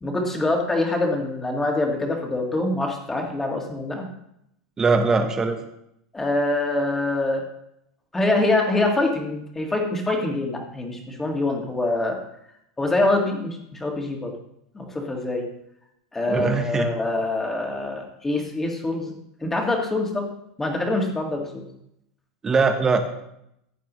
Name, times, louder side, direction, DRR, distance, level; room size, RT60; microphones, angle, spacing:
voice 1, 0.0-4.1 6.1-7.4 8.1-12.2 12.8-14.3 14.7-15.4 16.1-19.1 19.4-20.3 20.6-21.6, left 2 dB, 10° left, 1 dB, 1.9 m, -24 dB
voice 2, 4.8-5.6 16.3-16.9 22.4-23.0, right 4 dB, 15° right, 6 dB, 1.1 m, -21 dB
15.5 x 9.1 x 3.1 m, 0.78 s
supercardioid pair, 155°, 3 cm